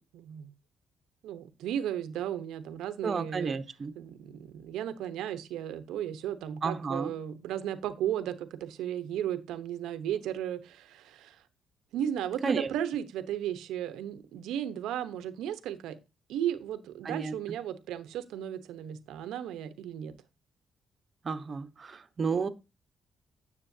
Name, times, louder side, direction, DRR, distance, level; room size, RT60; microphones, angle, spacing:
voice 1, 0.1-0.5 1.2-3.6 3.9-11.4 11.9-16.0 16.3-20.1, right 10 dB, 90° right, 1.0 m, -35 dB
voice 2, 3.0-3.9 6.6-7.1 12.4-12.7 17.0-17.3 21.2-22.5, right 5 dB, 40° right, 1.1 m, -31 dB
10.0 x 6.8 x 2.8 m
cardioid pair, 95°, 0 cm